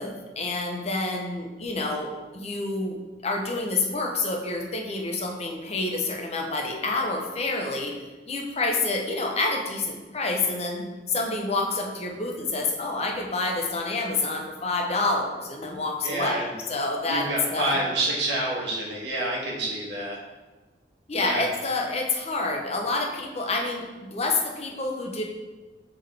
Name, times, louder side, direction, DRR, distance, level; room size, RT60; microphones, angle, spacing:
voice 1, 0.0-7.9 8.3-17.8 21.1-23.8 24.1-25.2, left 3 dB, 40° left, 1 dB, 0.8 m, -28 dB
voice 2, 16.0-16.5 17.1-20.2 21.1-21.5, right 1 dB, 90° right, -4 dB, 1.6 m, -28 dB
6.9 x 3.9 x 3.5 m, 1.2 s
head